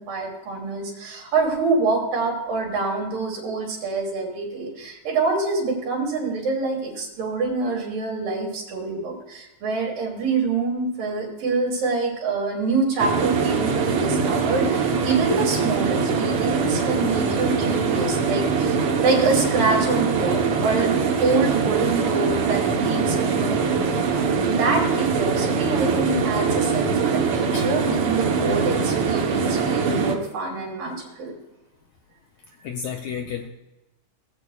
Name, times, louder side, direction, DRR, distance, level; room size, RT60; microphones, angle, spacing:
voice 1, 0.0-31.4, right 3 dB, 90° right, -2 dB, 4.2 m, -26 dB
sound 1, 13.0-30.1, right 5 dB, 65° right, 1.4 m, -22 dB
voice 2, 32.6-33.5, left 7 dB, 80° left, 3 dB, 1.6 m, -31 dB
18.5 x 8.0 x 2.3 m, 1.0 s
omnidirectional pair, 3.8 m